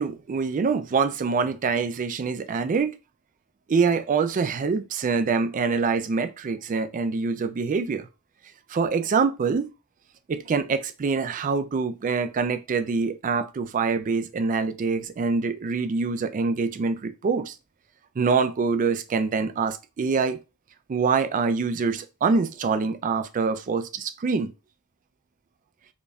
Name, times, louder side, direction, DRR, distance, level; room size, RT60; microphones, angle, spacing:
voice 1, 0.0-3.0 3.7-8.1 8.7-9.7 10.3-17.5 18.2-20.4 20.9-24.5, right 5 dB, 35° right, 0.3 m, -25 dB
5.0 x 2.6 x 2.3 m
head